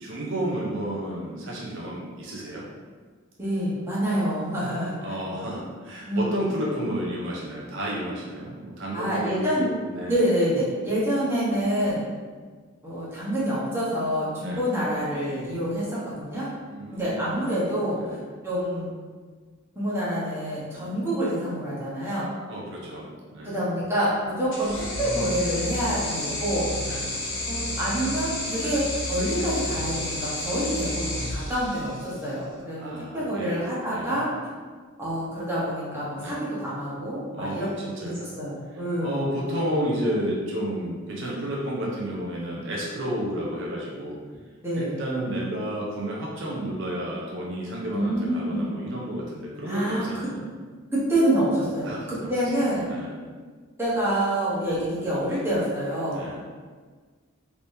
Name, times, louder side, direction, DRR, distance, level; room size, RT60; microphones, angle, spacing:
voice 1, 0.0-2.7 5.0-10.1 14.4-14.7 16.7-17.3 18.0-18.2 20.7-20.9 22.5-23.6 26.9-27.0 28.6-28.7 32.8-33.6 33.9-34.2 36.2-36.4 37.3-38.3 39.0-44.2 44.7-50.4 51.9-52.3 52.9-53.2 56.1-56.4, right 1 dB, 60° right, -4 dB, 0.6 m, -31 dB
voice 2, 3.4-5.0 6.1-6.3 8.9-9.7 10.1-12.0 12.8-16.5 16.9-18.2 18.4-18.9 19.7-22.3 23.4-26.7 27.5-34.5 35.0-37.7 38.0-39.3 44.6-45.0 47.9-48.8 49.6-50.3 50.9-52.9 53.8-56.4, right 1 dB, 10° right, -9 dB, 1.0 m, -27 dB
sound 1, 24.5-32.1, left 1 dB, 65° left, 0.8 m, -31 dB
3.3 x 2.9 x 2.7 m, 1.5 s
head